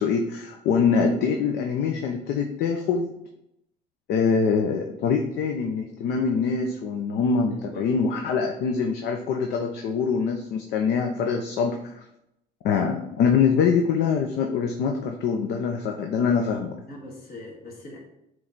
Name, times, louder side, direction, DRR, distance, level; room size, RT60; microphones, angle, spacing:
voice 1, 0.0-3.1 4.1-12.0 12.6-16.8, left 5 dB, 80° left, 3 dB, 0.7 m, -24 dB
voice 2, 7.5-7.8 16.8-18.0, left 1 dB, 60° left, -2 dB, 2.1 m, -41 dB
7.6 x 3.3 x 4.0 m, 0.82 s
cardioid pair, 110°, 17 cm